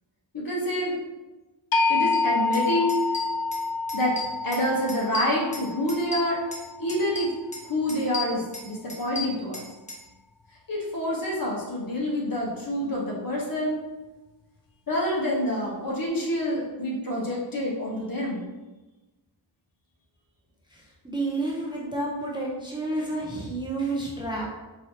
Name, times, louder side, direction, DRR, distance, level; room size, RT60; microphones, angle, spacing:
voice 1, 0.3-0.9 1.9-3.0 3.9-4.2 4.4-6.4 6.8-7.3 7.6-9.6 10.7-13.8 14.9-18.4, left 1 dB, 45° left, -4 dB, 1.2 m, -27 dB
sound 1, 1.7-7.7, left 3 dB, 75° left, 0.6 m, -28 dB
sound 2, 2.1-2.2 2.5-2.6 2.9-3.6 3.9-4.6 4.9-6.6 6.9-7.6 7.9-10.0, left 4 dB, 15° left, 0.9 m, -35 dB
voice 2, 21.0-24.5, right 2 dB, 10° right, -4 dB, 0.6 m, -30 dB
4.6 x 2.7 x 2.8 m, 1.1 s
wide cardioid pair, 85°, 47 cm